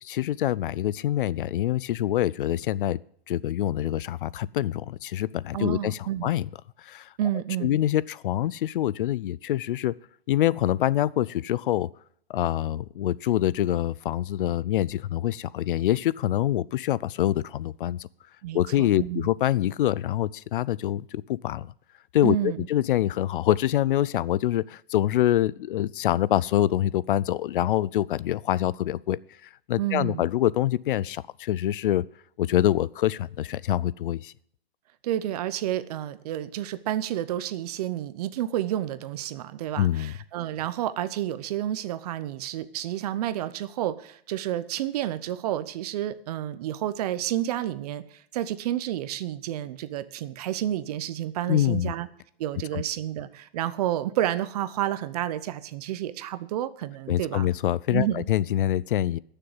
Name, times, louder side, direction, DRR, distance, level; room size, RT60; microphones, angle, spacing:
voice 1, 0.0-3.0 3.3-6.5 6.8-7.1 7.6-9.9 10.3-11.9 12.3-18.1 18.5-21.7 22.1-29.2 29.7-32.0 32.4-34.3 39.8-40.2 51.5-51.9 52.7-52.8 57.1-59.2, left 13 dB, 60° left, 21 dB, 0.5 m, -25 dB
voice 2, 5.5-6.3 7.2-7.8 18.4-19.3 22.2-22.7 29.8-30.3 35.0-52.1 52.4-57.5 57.9-58.2, right 12 dB, 40° right, 15 dB, 0.8 m, -30 dB
13.0 x 6.7 x 7.9 m, 0.63 s
hypercardioid pair, 155°, 31 cm